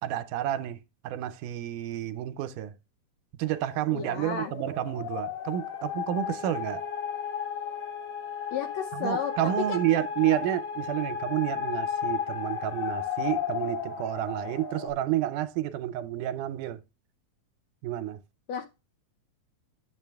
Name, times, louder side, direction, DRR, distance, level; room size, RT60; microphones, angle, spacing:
voice 1, 0.0-2.8 3.4-6.8 8.9-16.8 17.8-18.2, right 13 dB, 80° right, 2.2 m, -30 dB
sound 1, 3.5-14.9, left 7 dB, 50° left, 2.2 m, -34 dB
voice 2, 3.9-4.5 8.5-9.3 9.7-9.8 18.5-18.7, left 7 dB, 75° left, 1.7 m, -32 dB
8.7 x 6.8 x 3.4 m
omnidirectional pair, 3.6 m